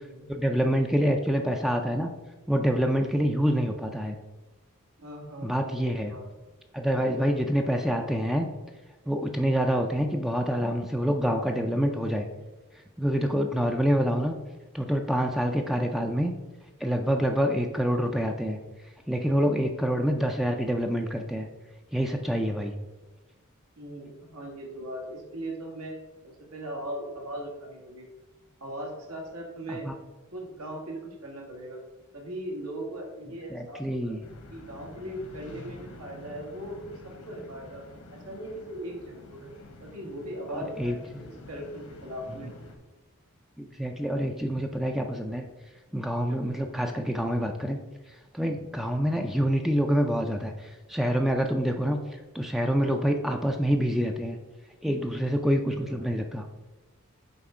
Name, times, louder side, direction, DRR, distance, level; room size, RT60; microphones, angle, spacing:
voice 1, 0.3-2.1 2.5-4.2 5.4-6.1 6.7-8.5 9.1-12.3 13.0-14.4 14.7-16.3 16.8-18.6 19.1-21.5 21.9-22.7 29.7-29.9 33.5-34.2 40.6-40.9 43.6-45.4 45.9-47.8 48.3-52.0 52.3-54.4 54.8-56.5, equal, ahead, 3 dB, 0.3 m, -26 dB
voice 2, 5.0-6.5 7.0-7.4 17.1-17.3 23.8-26.0 26.2-28.1 28.6-29.9 30.3-31.8 32.1-34.2 34.5-37.8 38.1-39.5 39.8-42.5 46.3-46.4 55.4-55.6 55.9-56.1, right 1 dB, 85° right, 0 dB, 1.6 m, -39 dB
sound 1, 34.2-42.8, left 1 dB, 75° left, 1.2 m, -48 dB
7.9 x 3.3 x 4.8 m, 1.1 s
head